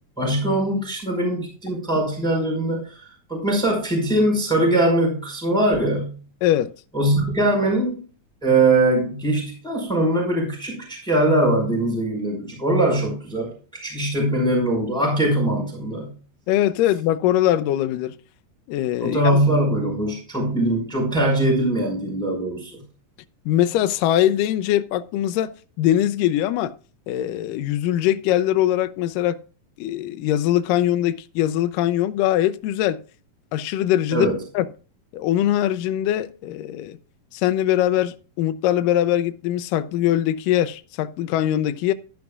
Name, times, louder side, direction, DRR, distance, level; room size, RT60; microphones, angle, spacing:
voice 1, 0.2-6.2 6.9-8.0 8.4-13.5 13.8-16.1 19.0-22.8 34.1-34.4, right 1 dB, ahead, 4.4 m, -21 dB
voice 2, 16.5-18.2 18.7-19.2 23.5-25.5 25.8-26.7 27.1-29.4 29.8-33.0 33.5-34.7 35.1-37.0 37.3-41.9, left 12 dB, 80° left, 2.2 m, -22 dB
13.0 x 10.0 x 2.4 m
omnidirectional pair, 4.0 m